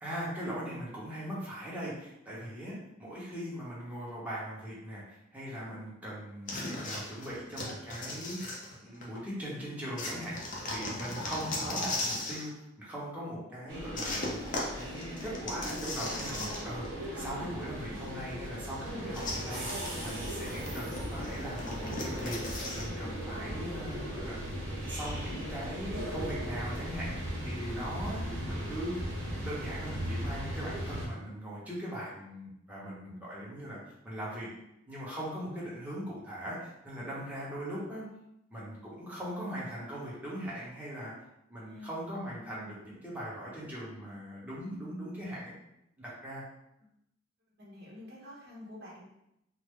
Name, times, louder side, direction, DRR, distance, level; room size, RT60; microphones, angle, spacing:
voice 1, 0.0-8.5 8.8-10.4 10.7-12.5 12.8-14.4 14.7-16.9 17.2-24.4 24.9-27.1 27.4-29.0 29.4-33.8 34.0-34.5 34.9-38.1 38.5-41.1 41.5-45.5 46.0-46.4, equal, 10° right, -7 dB, 0.9 m, -40 dB
sound 1, 6.5-9.2 10.0-12.5 14.0-16.9 17.2-17.3 19.1-22.9, left 2 dB, 40° left, 0.6 m, -38 dB
sound 2, 13.7-31.1, equal, 85° right, 0.8 m, -38 dB
voice 2, 41.6-42.0 45.0-45.1 47.6-49.0, left 1 dB, 55° right, -5 dB, 1.1 m, -48 dB
3.7 x 2.0 x 3.1 m, 0.82 s
head